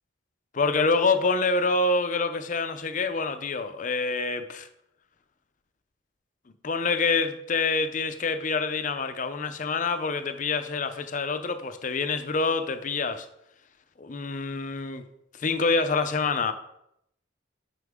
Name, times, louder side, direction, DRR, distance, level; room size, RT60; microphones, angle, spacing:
voice 1, 0.5-4.7 6.6-13.3 14.0-15.0 15.4-16.5, left 4 dB, 40° left, 0.5 m, -26 dB
9.5 x 5.7 x 3.6 m
head